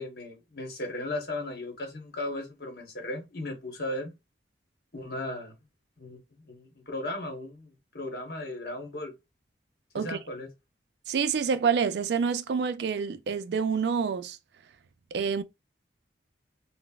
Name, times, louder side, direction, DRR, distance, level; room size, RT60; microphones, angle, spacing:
voice 1, 0.0-4.1 4.9-5.5 6.0-9.1 9.9-10.5, left 1 dB, 55° left, 1.0 m, -36 dB
voice 2, 11.1-14.4 15.1-15.4, right 6 dB, 65° right, 0.3 m, -27 dB
3.9 x 2.0 x 2.2 m
head